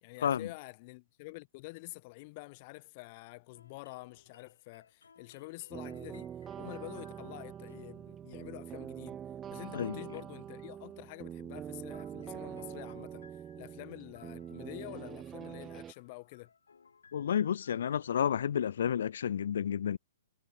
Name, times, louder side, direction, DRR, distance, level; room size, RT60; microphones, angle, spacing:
voice 1, 0.0-9.2 9.5-16.5, left 25 dB, 40° left, 0.9 m, -48 dB
sound 1, 3.5-7.8 11.1-11.2 11.9-18.9, left 5 dB, 90° left, 7.3 m, -62 dB
sound 2, 5.7-15.9, right 9 dB, 15° right, 1.0 m, -44 dB
voice 2, 17.1-20.0, left 8 dB, 70° left, 0.6 m, -31 dB
hypercardioid pair, 140°, 0 cm